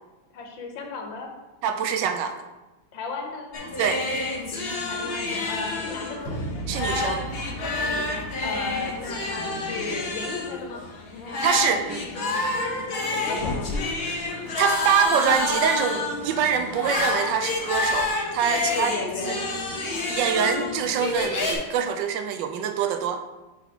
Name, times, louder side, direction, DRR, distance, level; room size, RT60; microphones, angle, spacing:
voice 1, 0.3-1.3 2.9-3.5 4.9-6.3 7.8-10.8 12.9-13.7 18.5-19.4, left 4 dB, 85° left, 2 dB, 1.7 m, -34 dB
voice 2, 1.6-2.4 3.8-4.0 6.7-7.2 11.4-12.0 14.6-18.9 19.3-19.4 20.1-23.2, right 7 dB, 75° right, 7 dB, 1.2 m, -25 dB
sound 1, 3.5-21.6, left 2 dB, 50° left, 0.7 m, -29 dB
sound 2, 6.2-10.3, right 2 dB, 20° left, 1.3 m, -37 dB
5.1 x 4.9 x 4.5 m, 1.1 s
omnidirectional pair, 2.0 m